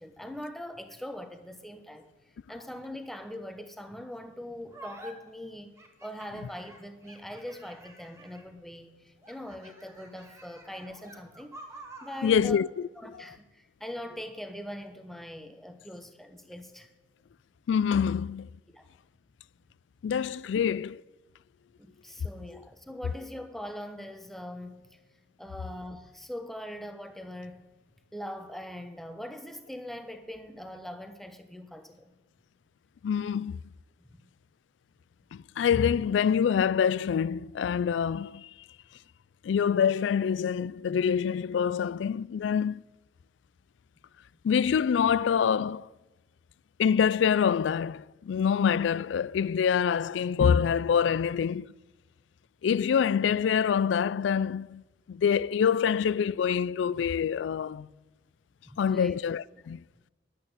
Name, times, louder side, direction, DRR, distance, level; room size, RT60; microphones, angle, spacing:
voice 1, 0.0-2.1 2.5-5.7 6.0-11.6 12.0-12.6 13.0-16.9 18.7-18.9 20.5-20.7 21.8-25.0 25.4-27.6 28.1-32.1 34.0-34.3 58.7-59.2 59.5-59.6, left 1 dB, ahead, 0.9 m, -42 dB
sound 1, 4.7-5.1 5.8-8.6 9.2-12.4, right 2 dB, 15° right, 1.7 m, -49 dB
voice 2, 12.2-12.9 17.7-18.5 20.0-20.9 33.0-33.6 35.3-38.5 39.4-42.8 44.4-45.9 46.8-51.7 52.6-54.8 55.1-57.9 58.8-59.8, left 7 dB, 85° left, 0.3 m, -26 dB
11.0 x 8.5 x 7.9 m
head